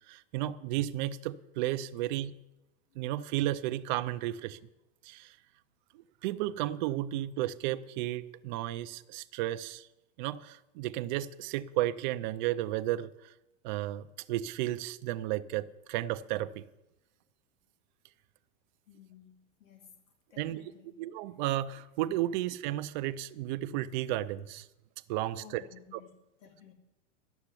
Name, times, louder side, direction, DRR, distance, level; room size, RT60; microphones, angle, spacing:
voice 1, 0.1-2.3 3.0-4.6 5.0-5.3 5.9-9.9 10.2-13.3 13.6-16.6 20.4-20.6 21.0-24.7 25.1-25.6, right 14 dB, 40° right, 0.5 m, -33 dB
voice 2, 18.8-20.0 20.3-20.9 25.3-26.7, left 7 dB, 90° left, 3.2 m, -55 dB
12.0 x 7.1 x 9.9 m
supercardioid pair, 160°, 38 cm